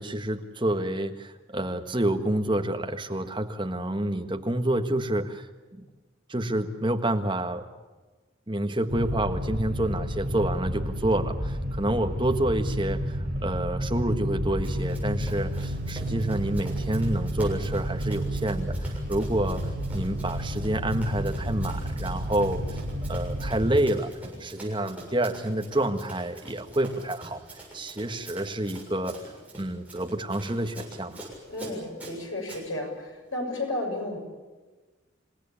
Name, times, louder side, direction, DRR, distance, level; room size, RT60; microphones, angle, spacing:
voice 1, 0.0-5.8 6.3-7.6 8.5-22.8 23.1-24.1 24.4-27.4 27.7-29.2 29.5-31.3, right 1 dB, 25° right, 5 dB, 1.5 m, -28 dB
sound 1, 8.9-23.8, equal, 50° right, 4.1 m, -31 dB
Run, 14.6-32.6, right 1 dB, 5° right, 7.3 m, -45 dB
voice 2, 31.5-34.2, left 1 dB, 75° left, 1 dB, 7.4 m, -32 dB
28.0 x 17.0 x 8.6 m, 1.2 s
head